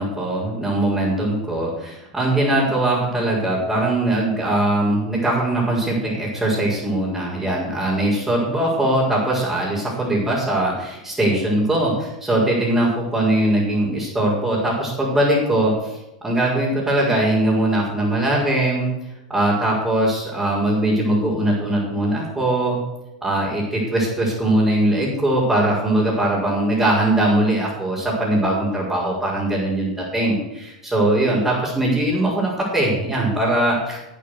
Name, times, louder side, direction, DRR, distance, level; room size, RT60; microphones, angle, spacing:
voice 1, 0.0-18.9 19.3-22.8 23.2-34.0, right 1 dB, 10° right, -7 dB, 5.5 m, -21 dB
12.5 x 8.4 x 6.5 m, 0.94 s
hypercardioid pair, 95°, 4 cm